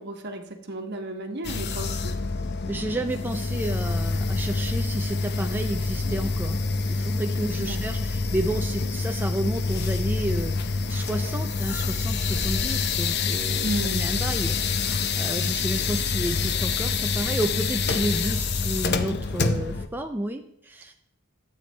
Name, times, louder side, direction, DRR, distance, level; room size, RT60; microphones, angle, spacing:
voice 1, 0.0-2.2 7.5-7.8 13.6-14.0, right 1 dB, 55° right, 4 dB, 1.3 m, -33 dB
sound 1, 1.4-19.9, left 4 dB, 55° left, 0.7 m, -27 dB
voice 2, 2.7-6.6 6.9-21.0, right 1 dB, 10° right, 4 dB, 0.5 m, -31 dB
12.5 x 8.6 x 3.3 m, 0.73 s
head